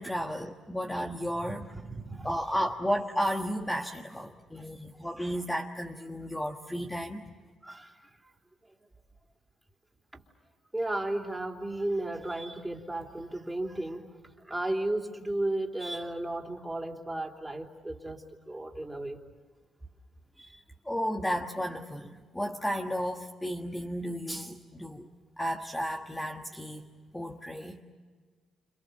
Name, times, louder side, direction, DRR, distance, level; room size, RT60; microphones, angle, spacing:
voice 1, 0.0-1.6 2.2-7.3 20.8-25.1 25.4-26.9 27.1-27.8, equal, 10° left, 2 dB, 1.5 m, -33 dB
voice 2, 1.3-2.4 5.3-5.4 7.6-7.9 10.7-14.1 14.4-19.2 20.4-20.6 27.6-27.7, right 1 dB, 10° right, 2 dB, 3.3 m, -34 dB
29.5 x 28.0 x 6.9 m, 1.5 s
cardioid pair, 90°, 0 cm